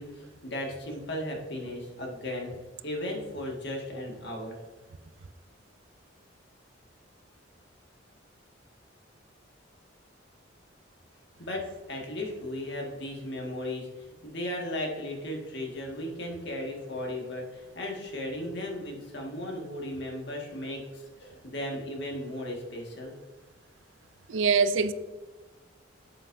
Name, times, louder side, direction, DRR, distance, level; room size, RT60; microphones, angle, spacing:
voice 1, 0.0-2.5 2.8-4.5 11.4-11.6 11.9-23.1, left 1 dB, 60° left, 1.9 m, -36 dB
voice 2, 24.3-24.9, right 5 dB, 80° right, 0.5 m, -23 dB
9.3 x 7.8 x 2.7 m
head